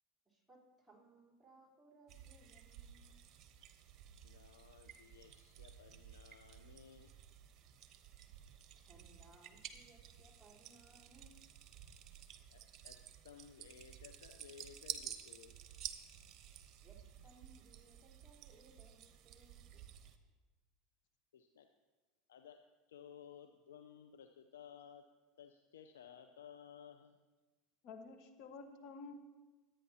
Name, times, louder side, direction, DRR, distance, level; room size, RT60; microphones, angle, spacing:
voice 1, 0.3-3.2 8.8-11.4 16.8-20.3, right 2 dB, ahead, -4 dB, 3.7 m, -65 dB
sound 1, 2.1-20.2, right 10 dB, 45° right, 0.9 m, -53 dB
voice 2, 4.2-7.1 12.5-15.6 17.2-17.3 21.3-21.7 22.3-22.6 22.9-25.0 25.4-27.2 28.4-28.5, left 8 dB, 85° left, 6 dB, 0.6 m, -57 dB
voice 3, 27.8-29.1, left 4 dB, 55° left, 5 dB, 1.4 m, -51 dB
23.5 x 8.9 x 2.8 m, 1.3 s
hypercardioid pair, 90°, 0 cm